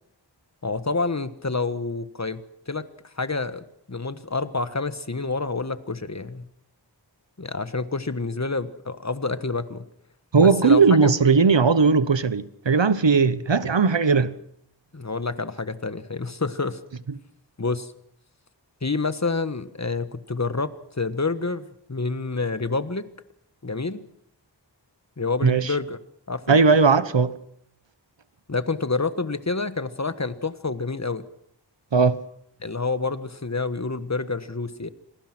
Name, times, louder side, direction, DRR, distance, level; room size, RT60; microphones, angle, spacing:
voice 1, 0.6-2.4 2.7-2.8 3.1-6.5 7.4-9.8 10.4-11.1 14.9-16.8 17.6-17.9 18.8-23.0 23.6-24.0 25.2-26.0 26.3-26.6 28.5-31.2 32.6-34.9, left 3 dB, 40° left, 1.5 m, -28 dB
voice 2, 10.3-14.4 25.4-25.7 26.5-27.3 31.9-32.2, right 5 dB, 85° right, 1.1 m, -18 dB
27.0 x 19.5 x 6.1 m
wide cardioid pair, 40°, 43 cm